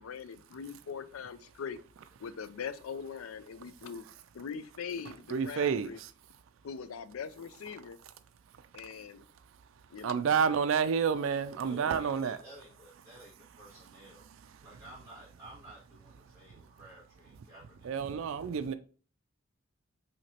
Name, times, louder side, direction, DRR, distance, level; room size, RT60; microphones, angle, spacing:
voice 1, 0.0-1.8 2.2-4.1 4.3-6.0 6.6-8.0 8.7-9.2 9.9-10.2, left 6 dB, 85° left, 0.4 m, -41 dB
voice 2, 5.3-6.1 8.6-8.7 10.0-12.4 17.8-18.7, right 6 dB, 70° right, 0.3 m, -29 dB
voice 3, 11.6-14.2 14.6-18.7, equal, 15° right, 2.4 m, -53 dB
5.9 x 2.8 x 2.8 m
head